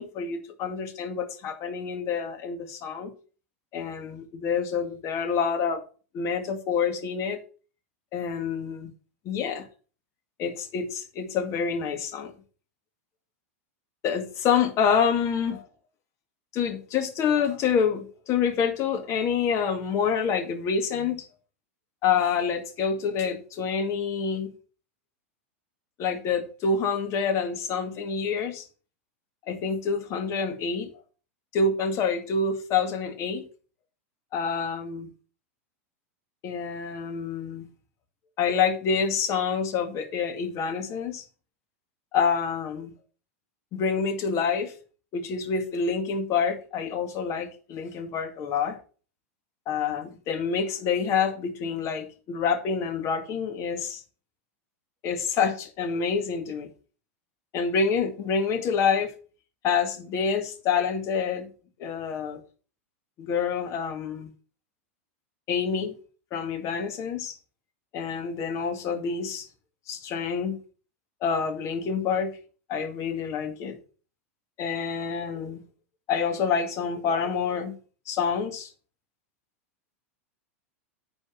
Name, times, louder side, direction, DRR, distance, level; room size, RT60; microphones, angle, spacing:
voice 1, 0.0-3.1 3.7-5.8 6.1-7.4 8.1-8.9 9.3-9.7 10.4-12.3 14.0-15.7 16.5-21.3 22.0-24.5 26.0-28.7 29.5-30.9 31.5-33.5 34.3-35.1 36.4-37.7 38.4-41.2 42.1-42.9 43.7-44.7 45.1-48.8 49.7-54.0 55.0-56.7 57.5-59.1 59.6-61.5 61.8-62.4 63.2-64.3 65.5-65.9 66.3-67.4 67.9-69.5 69.9-70.6 71.2-72.3 72.7-73.8 74.6-75.6 76.1-77.7 78.1-78.7, left 6 dB, 40° left, 2.1 m, -27 dB
10.0 x 4.3 x 5.9 m
hypercardioid pair, 110°, 7 cm